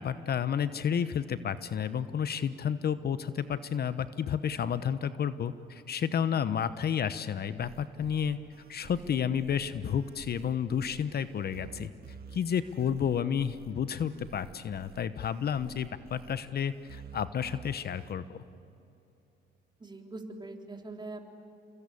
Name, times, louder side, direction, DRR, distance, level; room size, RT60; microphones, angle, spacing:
voice 1, 0.0-8.4 8.7-11.9 12.3-18.2, left 8 dB, 55° left, 13 dB, 0.9 m, -31 dB
sound 1, 7.6-18.1, right 7 dB, 50° right, 1.5 m, -51 dB
voice 2, 19.8-21.2, right 2 dB, 20° right, 3 dB, 3.4 m, -43 dB
29.0 x 22.5 x 8.5 m, 2.7 s
cardioid pair, 90°, 20 cm